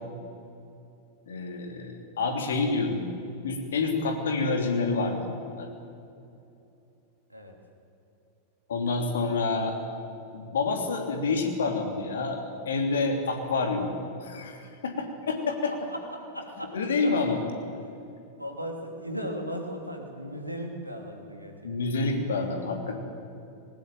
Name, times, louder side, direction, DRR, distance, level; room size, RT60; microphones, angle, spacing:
voice 1, 1.3-3.1 3.4-5.2 5.5-5.7 8.7-9.8 10.3-13.9 14.2-15.7 16.6-17.4 21.6-23.0, left 3 dB, 65° left, 4 dB, 3.1 m, -28 dB
voice 2, 15.9-16.7 18.4-21.7, equal, 90° right, 3 dB, 2.9 m, -37 dB
19.5 x 19.0 x 9.1 m, 2.8 s
figure-of-eight pair, 90°, 0 cm